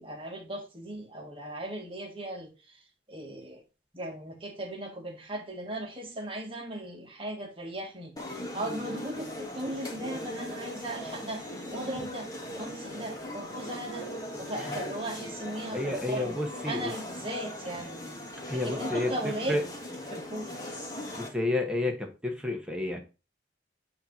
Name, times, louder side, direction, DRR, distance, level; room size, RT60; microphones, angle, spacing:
voice 1, 0.0-2.8 3.1-3.6 3.9-11.4 11.7-12.3 12.5-14.1 14.4-18.0 18.5-19.6 20.1-20.6, right 1 dB, 30° right, 1.5 m, -37 dB
sound 1, 8.2-21.3, left 1 dB, 20° left, 1.3 m, -39 dB
voice 2, 15.7-16.9 18.5-19.6 21.2-23.0, left 2 dB, 5° right, 1.1 m, -30 dB
8.7 x 2.9 x 5.2 m
head